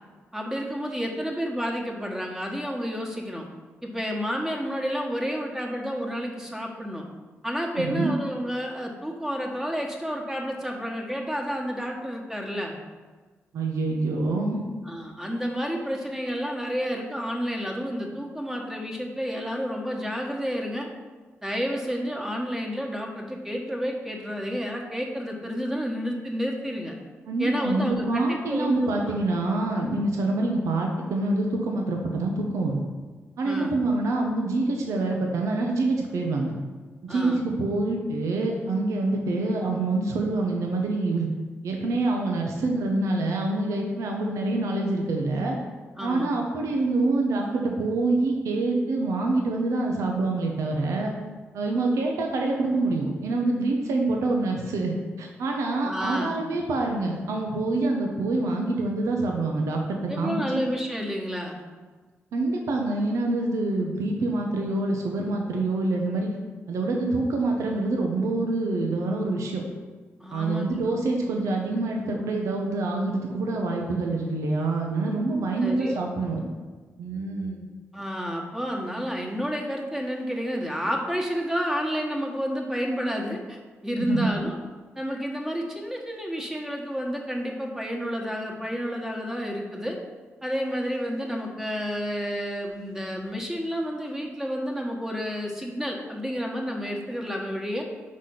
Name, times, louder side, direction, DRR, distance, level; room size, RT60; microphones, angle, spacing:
voice 1, 0.3-3.4 3.8-7.1 7.4-12.8 14.8-20.9 21.4-27.0 27.4-29.2 33.4-33.7 37.1-37.4 46.0-46.3 55.8-56.4 60.1-61.6 70.2-70.8 75.6-76.0 77.9-83.6 83.8-84.6 85.0-90.0 90.4-97.8, equal, 10° right, 0 dB, 1.3 m, -30 dB
voice 2, 7.8-8.1 13.5-14.6 27.3-32.8 33.4-36.5 37.0-41.3 41.6-45.6 46.0-51.1 51.5-60.6 62.3-66.3 66.7-69.6 70.3-76.4 77.0-77.7 84.0-84.3, right 2 dB, 85° right, 1 dB, 0.7 m, -26 dB
4.9 x 4.2 x 5.7 m, 1.4 s
cardioid pair, 60°, 5 cm